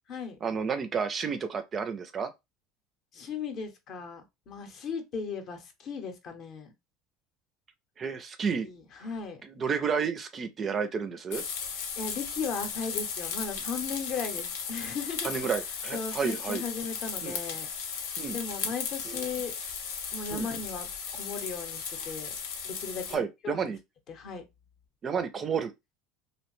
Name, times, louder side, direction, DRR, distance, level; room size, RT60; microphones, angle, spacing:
voice 1, 0.4-2.3 8.0-8.7 9.4-11.4 15.2-16.6 17.2-17.4 18.2-18.4 19.1-19.2 20.3-20.5 23.1-23.8 25.0-25.7, right 6 dB, 30° right, 0.4 m, -31 dB
voice 2, 3.1-6.7 8.6-9.4 12.0-15.3 15.9-17.7 18.3-19.5 20.1-20.9 21.1-22.3 22.6-23.7 24.1-24.4, left 5 dB, 45° left, 0.6 m, -37 dB
sound 1, 11.3-23.1, left 6 dB, 90° left, 0.6 m, -36 dB
2.6 x 2.1 x 3.0 m
supercardioid pair, 135°, 0 cm